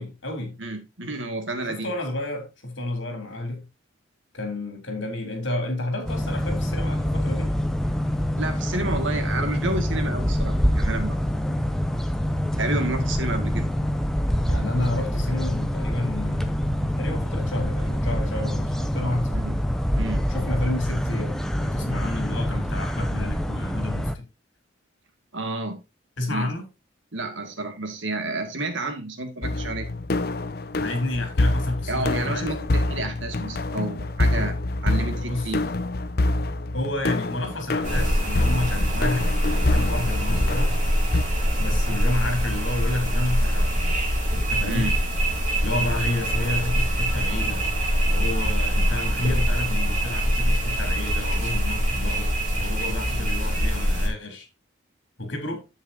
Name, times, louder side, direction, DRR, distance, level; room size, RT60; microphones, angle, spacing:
voice 1, 0.0-0.6 1.7-3.7 4.3-7.5 14.5-19.5 20.3-24.2 26.2-26.7 30.8-32.5 35.2-35.5 36.7-40.8 41.6-44.0 44.5-44.9 45.6-47.6 48.1-54.5 55.2-55.7, left 2 dB, 75° left, 3.6 m, -30 dB
voice 2, 0.6-1.9 8.4-11.2 12.6-13.7 19.3-19.5 19.9-20.2 25.3-25.8 26.3-26.5 27.1-29.9 31.9-34.6 34.8-35.7 44.7-44.9, right 2 dB, 75° right, 2.0 m, -30 dB
sound 1, 6.1-24.1, equal, ahead, 0.6 m, -25 dB
sound 2, 29.4-41.2, left 2 dB, 50° left, 0.6 m, -26 dB
sound 3, 37.8-54.1, equal, 40° right, 5.1 m, -24 dB
10.0 x 7.9 x 2.8 m
head